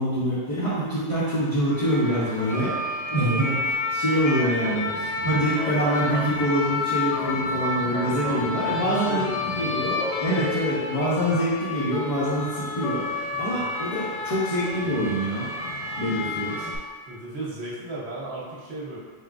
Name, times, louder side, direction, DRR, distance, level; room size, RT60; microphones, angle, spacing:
voice 1, 0.0-2.7 3.1-3.5 3.9-9.3 9.6-15.5 16.0-16.7, equal, 35° left, -10 dB, 0.8 m, -25 dB
sound 1, 1.7-16.8, left 3 dB, 55° left, 0.4 m, -30 dB
voice 2, 8.6-9.6 10.4-10.5 10.9-11.4 13.3-13.7 17.0-19.0, right 2 dB, 70° right, -5 dB, 1.1 m, -36 dB
4.5 x 3.5 x 2.5 m, 1.5 s
omnidirectional pair, 1.1 m